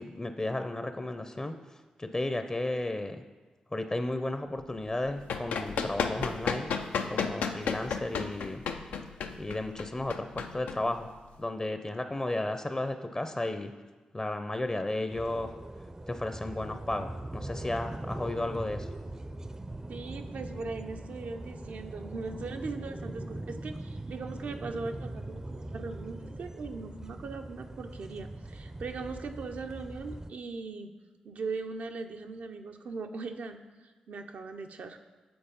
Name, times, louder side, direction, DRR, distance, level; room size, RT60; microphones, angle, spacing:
voice 1, 0.0-1.6 2.0-3.2 3.7-6.7 7.1-8.6 9.4-11.1 11.4-13.7 14.1-15.5 16.1-18.9, left 2 dB, 25° left, 8 dB, 0.6 m, -33 dB
Run, 4.9-11.4, left 5 dB, 85° left, 0.4 m, -33 dB
sound 1, 15.1-30.3, right 1 dB, 25° right, 0.5 m, -41 dB
voice 2, 19.9-30.9 31.2-35.0, right 4 dB, 70° right, 5 dB, 0.6 m, -39 dB
7.9 x 4.0 x 5.2 m, 1.3 s
supercardioid pair, 40°, 3 cm